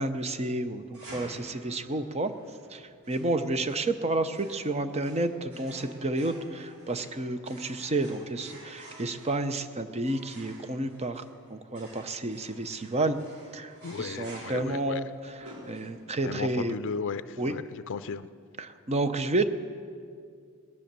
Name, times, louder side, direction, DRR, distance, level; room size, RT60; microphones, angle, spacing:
voice 1, 0.0-2.3 2.7-11.2 11.5-13.2 13.5-16.8 17.4-17.5 18.6-19.4, right 2 dB, 30° right, 10 dB, 0.7 m, -30 dB
sound 1, 0.9-16.3, right 1 dB, 70° right, 4.9 m, -51 dB
voice 2, 13.8-15.0 16.2-18.3, left 5 dB, 60° left, 13 dB, 0.4 m, -35 dB
19.0 x 10.5 x 6.8 m, 2.3 s
head